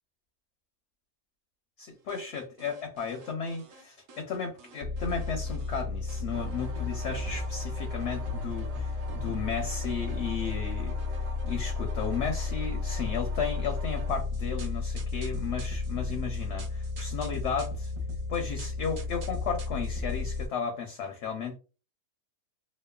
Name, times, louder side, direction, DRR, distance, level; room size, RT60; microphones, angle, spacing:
voice 1, 1.8-10.9 11.4-17.9 18.3-21.6, left 6 dB, 65° left, 0.7 m, -34 dB
sound 1, 2.1-3.8 4.1-5.8 6.1-20.5, left 1 dB, 65° right, 1.0 m, -43 dB
sound 2, 4.8-20.5, left 4 dB, 85° left, 1.1 m, -33 dB
2.9 x 2.1 x 2.2 m
omnidirectional pair, 1.6 m